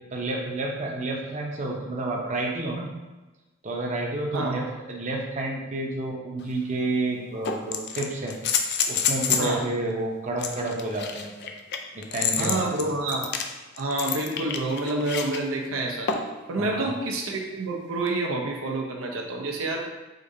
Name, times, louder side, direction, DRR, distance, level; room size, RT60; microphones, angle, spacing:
voice 1, 0.1-2.9 3.6-8.4 8.8-11.3 11.9-12.6 16.6-16.9, right 2 dB, 35° right, -1 dB, 0.7 m, -30 dB
voice 2, 4.3-4.7 9.4-9.6 12.4-13.3 13.8-16.1 16.5-19.9, right 2 dB, 80° right, 1 dB, 0.6 m, -28 dB
sound 1, 6.4-6.5 7.4-9.5 10.4-15.4 16.1-16.4 18.1-18.2, left 6 dB, 55° left, 0.4 m, -28 dB
5.1 x 3.8 x 2.7 m, 1.1 s
head